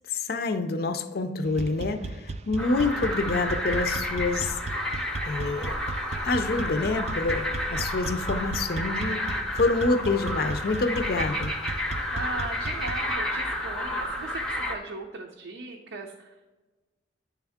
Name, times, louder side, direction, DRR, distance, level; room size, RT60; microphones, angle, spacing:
voice 1, 0.1-4.6 5.2-5.8 6.2-11.6, left 3 dB, 55° left, 9 dB, 0.5 m, -27 dB
sound 1, 1.5-13.1, right 3 dB, 35° right, 0.4 m, -36 dB
sound 2, 2.6-14.8, left 1 dB, 5° left, 0.6 m, -31 dB
voice 2, 12.1-16.5, right 2 dB, 90° right, 0 dB, 0.6 m, -38 dB
9.5 x 3.5 x 3.5 m, 1.2 s
head